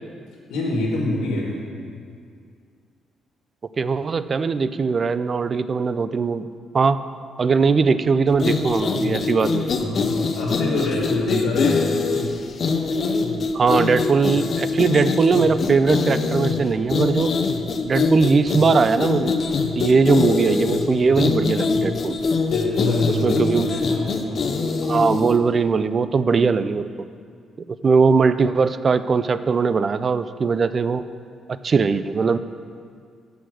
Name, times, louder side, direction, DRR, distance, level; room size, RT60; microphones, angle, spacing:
voice 1, 0.5-1.6 9.8-12.0 21.1-21.3 22.5-24.5, left 2 dB, 90° left, -2 dB, 1.5 m, -26 dB
voice 2, 3.8-6.5 6.7-7.0 7.4-9.6 13.5-17.3 17.9-19.4 19.7-22.2 23.1-23.7 24.9-26.9 27.8-31.0 31.6-32.4, right 5 dB, 40° right, 13 dB, 0.4 m, -20 dB
sound 1, 8.3-25.4, left 4 dB, 50° left, 0.7 m, -23 dB
7.0 x 6.2 x 7.5 m, 2.2 s
cardioid pair, 90°, 0 cm